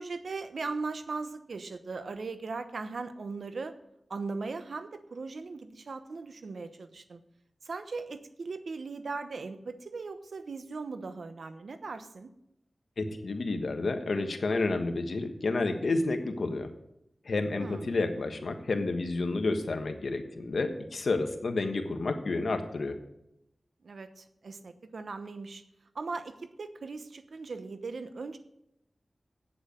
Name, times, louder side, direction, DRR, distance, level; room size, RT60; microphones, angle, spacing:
voice 1, 0.0-3.7 4.1-7.2 7.6-12.3 17.6-18.0 23.8-25.6 25.9-28.4, right 4 dB, 85° right, 10 dB, 0.9 m, -38 dB
voice 2, 13.0-16.7 17.2-22.9, left 3 dB, 80° left, 6 dB, 1.3 m, -30 dB
8.7 x 7.9 x 7.8 m, 0.83 s
cardioid pair, 50°, 0 cm